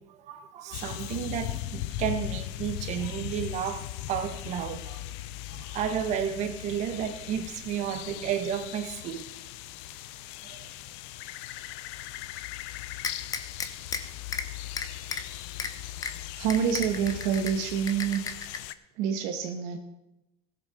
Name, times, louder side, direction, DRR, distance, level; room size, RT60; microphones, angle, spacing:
voice 1, 0.1-5.0 5.5-9.2 10.4-10.7, right 9 dB, 50° right, 8 dB, 1.4 m, -32 dB
sound 1, 0.7-18.7, left 14 dB, 75° left, 0.6 m, -39 dB
sound 2, 13.0-14.0 14.3-14.4 14.8-15.2 15.6-15.7 16.0-16.1 16.5-17.5 17.9-18.6, left 5 dB, 25° left, 1.0 m, -32 dB
voice 2, 16.3-18.2 19.0-19.8, right 8 dB, 70° right, 4 dB, 1.2 m, -27 dB
16.0 x 7.2 x 5.0 m, 0.91 s
supercardioid pair, 110°, 15 cm